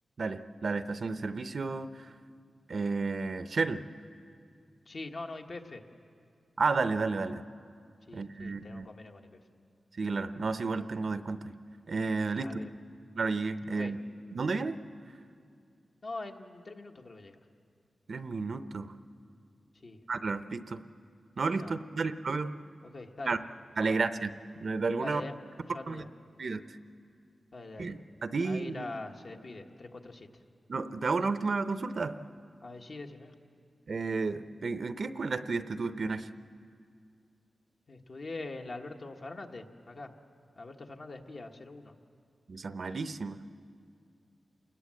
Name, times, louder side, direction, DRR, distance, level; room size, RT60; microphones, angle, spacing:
voice 1, 0.2-2.1 2.7-3.8 6.6-7.4 8.1-8.9 10.0-11.4 11.9-12.6 13.2-14.0 14.3-14.8 18.1-18.9 20.1-20.8 21.4-22.5 23.3-23.4 23.8-24.3 24.6-25.2 25.9-26.1 26.4-26.6 27.8-28.9 30.7-32.2 33.9-36.3 42.5-43.4, right 4 dB, 55° right, 11 dB, 0.7 m, -32 dB
voice 2, 4.9-5.8 8.1-9.4 12.4-12.7 13.8-13.9 16.0-17.4 19.8-20.0 21.6-21.7 22.9-23.3 23.8-24.0 25.0-26.1 27.5-27.9 28.4-30.3 32.6-33.3 37.9-40.1 40.6-41.9, left 2 dB, 50° left, 3 dB, 1.4 m, -43 dB
27.5 x 20.0 x 7.7 m, 2.3 s
wide cardioid pair, 120°, 0 cm